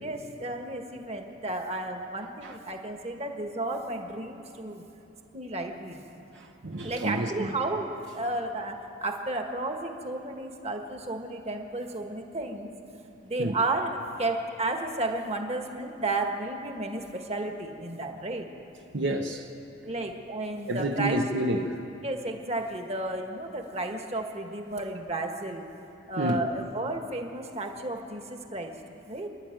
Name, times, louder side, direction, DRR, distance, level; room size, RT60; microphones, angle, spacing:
voice 1, 0.0-4.8 5.3-6.0 6.8-12.7 13.2-18.5 19.8-21.2 22.0-25.7 26.1-28.7 29.1-29.3, right 2 dB, 35° right, 3 dB, 1.6 m, -33 dB
voice 2, 6.3-7.5 13.4-13.5 18.9-19.5 20.7-21.8 26.2-26.4, right 1 dB, 65° right, 3 dB, 1.1 m, -29 dB
28.5 x 11.5 x 9.1 m, 3.0 s
head